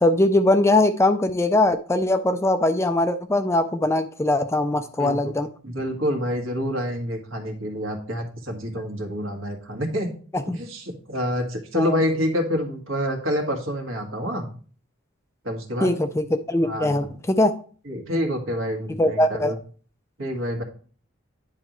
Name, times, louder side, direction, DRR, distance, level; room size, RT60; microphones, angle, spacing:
voice 1, 0.0-5.5 10.3-10.6 11.8-12.0 15.8-17.5 19.0-19.6, left 1 dB, 15° left, 9 dB, 0.3 m, -21 dB
voice 2, 5.0-5.3 5.6-10.1 10.5-14.5 15.4-15.9 16.6-16.9 17.8-19.5 20.2-20.6, equal, 70° right, 3 dB, 1.6 m, -27 dB
9.8 x 5.1 x 3.0 m, 0.42 s
head